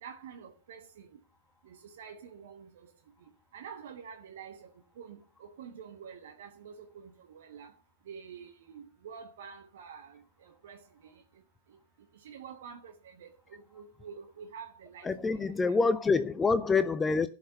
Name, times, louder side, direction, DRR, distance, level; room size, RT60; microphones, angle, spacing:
voice 1, 0.0-1.1 1.6-2.9 3.5-7.7 8.1-10.8 12.2-15.8, right 7 dB, 60° right, 1.2 m, -48 dB
voice 2, 15.0-17.3, left 4 dB, 15° left, 0.5 m, -26 dB
11.5 x 6.0 x 6.8 m
figure-of-eight pair, 90°, 0 cm